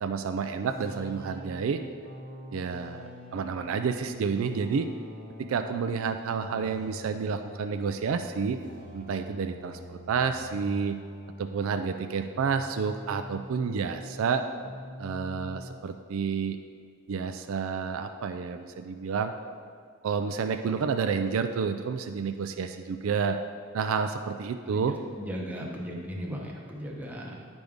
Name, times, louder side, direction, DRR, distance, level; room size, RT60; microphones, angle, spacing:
voice 1, 0.0-1.8 2.5-4.9 5.4-8.6 8.9-11.0 11.4-14.4 15.0-16.6 17.1-19.3 20.0-23.4 23.7-25.0, right 5 dB, 70° right, 7 dB, 0.4 m, -30 dB
sound 1, 0.6-14.3 14.6-15.8, equal, 45° left, 1.4 m, -45 dB
voice 2, 25.2-27.5, equal, 10° right, -2 dB, 0.9 m, -37 dB
9.4 x 5.1 x 3.5 m, 2.1 s
head